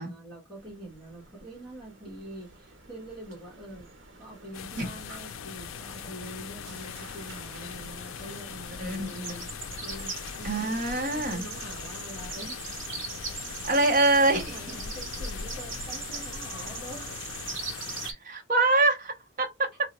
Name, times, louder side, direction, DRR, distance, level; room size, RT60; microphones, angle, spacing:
voice 1, 0.0-3.9 4.2-9.4 9.8-12.6 14.3-17.1, right 1 dB, 5° left, 1.1 m, -45 dB
sound 1, 0.7-18.1, right 4 dB, 70° right, 0.9 m, -42 dB
Day Fountain, 4.5-18.1, left 7 dB, 75° left, 0.3 m, -40 dB
voice 2, 8.8-9.4 10.4-11.4 13.7-14.6 18.0-19.7, right 2 dB, 40° right, 0.8 m, -25 dB
3.6 x 2.1 x 2.8 m
head